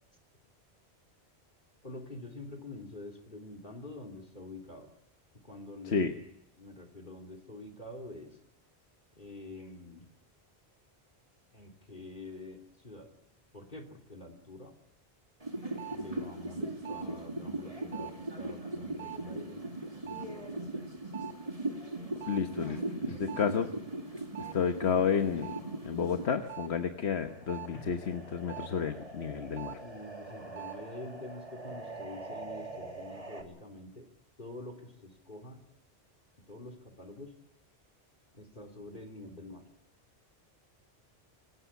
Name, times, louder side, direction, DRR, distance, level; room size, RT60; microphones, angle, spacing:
voice 1, 1.8-4.9 5.4-6.2 6.6-8.4 9.2-10.1 11.5-13.1 13.5-14.7 15.9-19.6 20.0-20.9 22.7-23.2 27.7-27.9 29.8-34.1 34.4-35.6 36.5-37.3 38.3-39.6, left 2 dB, 50° left, 7 dB, 3.0 m, -47 dB
sound 1, 15.4-26.7 27.1-33.4, right 2 dB, 35° right, 2.6 m, -40 dB
voice 2, 22.3-22.8 23.2-23.7 24.5-25.5 25.8-29.8, left 6 dB, 85° left, 6 dB, 1.4 m, -31 dB
26.0 x 15.5 x 8.4 m, 0.79 s
omnidirectional pair, 1.1 m